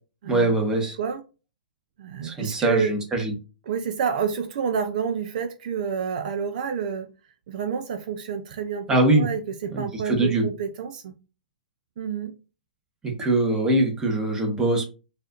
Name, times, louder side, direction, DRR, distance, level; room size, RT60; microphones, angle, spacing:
voice 1, 0.2-1.0 2.2-3.3 8.9-9.3 9.7-10.5 13.0-14.8, right 2 dB, 15° right, 1.1 m, -22 dB
voice 2, 2.0-2.9 3.7-7.1 7.5-8.9 9.1-11.1 12.0-12.3, right 6 dB, 60° right, 0.5 m, -28 dB
4.1 x 2.5 x 2.5 m
hypercardioid pair, 130°, 5 cm